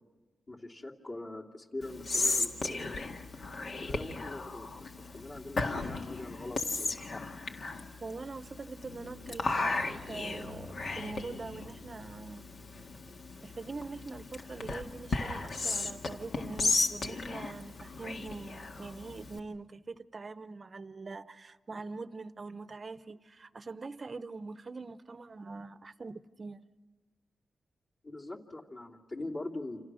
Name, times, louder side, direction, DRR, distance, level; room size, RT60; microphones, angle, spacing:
voice 1, 0.5-2.9 3.6-7.2 28.0-29.8, left 2 dB, 40° left, 2.9 m, -43 dB
Whispering, 1.8-19.4, left 3 dB, 65° left, 1.8 m, -35 dB
voice 2, 8.0-9.8 10.1-12.5 13.4-26.6, right 3 dB, 45° right, 0.8 m, -43 dB
29.0 x 27.5 x 6.3 m
cardioid pair, 85°, 0 cm